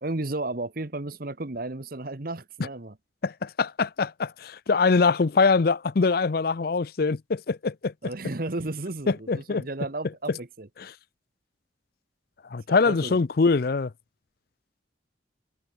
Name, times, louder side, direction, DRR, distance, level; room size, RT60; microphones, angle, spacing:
voice 1, 0.0-3.0 8.0-10.7 12.7-13.2, right 2 dB, 50° right, 1.2 m, -33 dB
voice 2, 3.2-7.9 9.1-9.6 12.5-13.9, left 4 dB, 50° left, 0.5 m, -23 dB
head